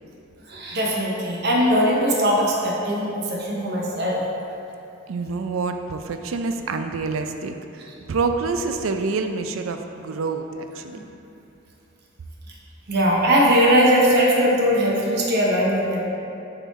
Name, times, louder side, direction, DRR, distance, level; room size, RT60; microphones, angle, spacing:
voice 1, 0.5-4.2 10.9-11.0 12.9-16.0, equal, 55° right, -3 dB, 0.8 m, -20 dB
voice 2, 5.1-11.0, right 4 dB, 75° right, 6 dB, 0.4 m, -27 dB
7.0 x 3.9 x 4.1 m, 2.8 s
head